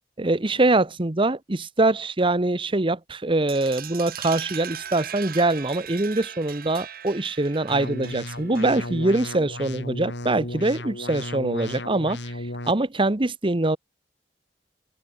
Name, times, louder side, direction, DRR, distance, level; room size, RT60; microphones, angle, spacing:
voice 1, 0.2-12.2 12.6-13.8, right 2 dB, 30° right, 1.0 m, -23 dB
sound 1, 3.5-9.0, right 9 dB, 55° right, 3.7 m, -39 dB
sound 2, 7.7-12.7, left 1 dB, 80° left, 7.1 m, -34 dB
open air
head